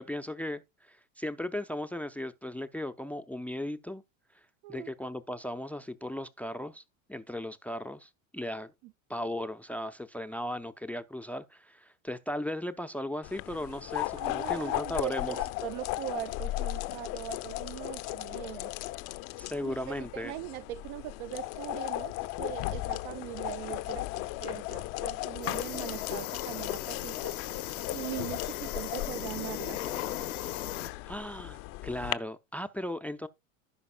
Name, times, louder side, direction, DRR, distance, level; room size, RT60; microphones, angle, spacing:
voice 1, 0.0-4.0 4.7-6.8 7.1-8.7 9.1-15.4 19.4-20.3 31.0-33.3, left 1 dB, 5° left, 0.5 m, -37 dB
sound 1, 13.2-32.1, left 18 dB, 50° left, 0.6 m, -36 dB
voice 2, 14.2-18.7 19.6-27.4 27.9-29.8, right 16 dB, 55° right, 0.5 m, -41 dB
sound 2, 25.4-30.9, left 12 dB, 85° left, 1.2 m, -38 dB
15.5 x 5.2 x 2.2 m
hypercardioid pair, 95°, 42 cm